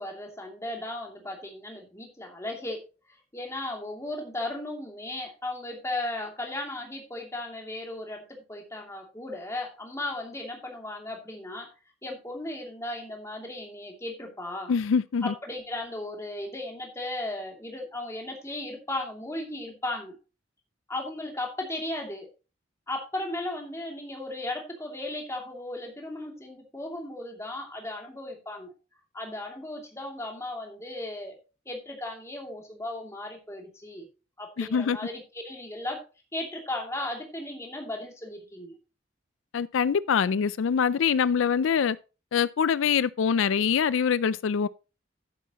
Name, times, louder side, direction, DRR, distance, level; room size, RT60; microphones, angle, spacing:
voice 1, 0.0-2.8 3.3-11.7 12.0-14.7 15.2-20.2 20.9-22.3 22.9-28.7 29.1-31.4 31.7-34.1 34.4-36.0 36.3-38.8, left 1 dB, 15° left, 2.7 m, -36 dB
voice 2, 14.7-15.3 34.6-35.0 39.5-42.0 42.3-44.7, left 6 dB, 85° left, 0.4 m, -24 dB
11.5 x 9.4 x 3.0 m
head